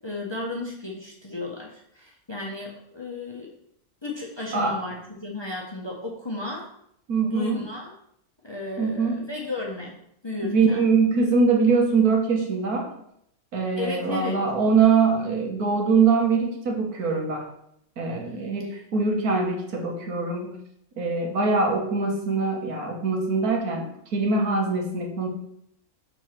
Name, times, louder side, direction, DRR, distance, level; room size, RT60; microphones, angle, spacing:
voice 1, 0.0-3.5 4.0-6.7 7.2-7.9 8.4-9.9 10.2-10.8 13.8-14.4, left 3 dB, 25° left, -1 dB, 0.7 m, -34 dB
voice 2, 7.1-7.6 8.8-9.3 10.4-12.9 13.5-17.5 18.0-20.6 21.0-23.9 24.1-25.3, right 4 dB, 85° right, 1 dB, 1.7 m, -23 dB
4.7 x 4.0 x 5.7 m, 0.73 s
omnidirectional pair, 1.5 m